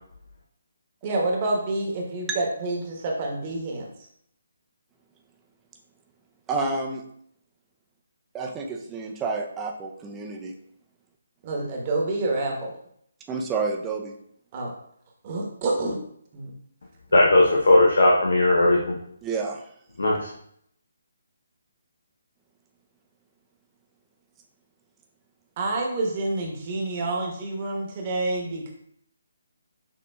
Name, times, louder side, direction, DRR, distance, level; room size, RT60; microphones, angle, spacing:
voice 1, 1.0-3.9 11.4-12.7 14.5-14.7 15.2-16.0 16.3-16.5 25.6-28.7, right 2 dB, 30° right, -1 dB, 1.0 m, -28 dB
voice 2, 6.5-7.0 8.3-10.5 13.3-14.1 19.2-19.6, right 4 dB, 15° right, 1 dB, 0.5 m, -29 dB
voice 3, 17.1-19.0 20.0-20.3, left 2 dB, 70° left, -2 dB, 0.6 m, -18 dB
6.3 x 2.7 x 2.2 m, 0.69 s
figure-of-eight pair, 145°, 0 cm